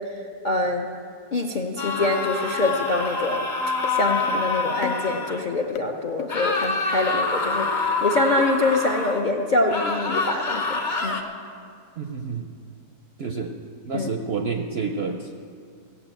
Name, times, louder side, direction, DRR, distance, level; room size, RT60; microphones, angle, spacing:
voice 1, 0.4-0.9 1.3-3.5 3.9-11.2 13.9-14.1, left 2 dB, 50° left, 2 dB, 0.5 m, -25 dB
sound 1, 1.8-5.4 6.3-9.2 9.7-11.2, left 3 dB, 35° left, 0.9 m, -26 dB
sound 2, 3.8-4.0 4.3-4.5 4.8-5.4 5.8-5.9 6.2-6.3 6.6-6.7 7.1-7.2 8.4-8.5 9.7-9.8, left 9 dB, 65° left, 0.9 m, -34 dB
voice 2, 12.0-12.5 13.2-13.5 13.8-15.4, right 4 dB, 60° right, 4 dB, 0.6 m, -29 dB
16.0 x 7.2 x 8.8 m, 2.3 s
omnidirectional pair, 1.8 m